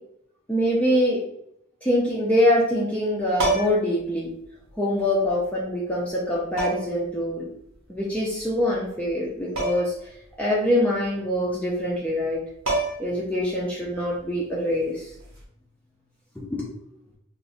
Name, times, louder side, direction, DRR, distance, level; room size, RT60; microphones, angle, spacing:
voice 1, 0.5-1.2 1.8-4.3 4.8-7.4 7.9-9.9 10.4-12.4 13.0-15.1 16.4-16.7, left 1 dB, 5° left, -6 dB, 0.4 m, -24 dB
sound 1, 3.3-4.0 5.3-5.4 6.6-7.0 9.6-10.0 10.3-10.4 12.2-12.3 12.7-13.2 15.2-15.4, right 2 dB, 85° right, 0.9 m, -27 dB
2.4 x 2.1 x 3.6 m, 0.76 s
head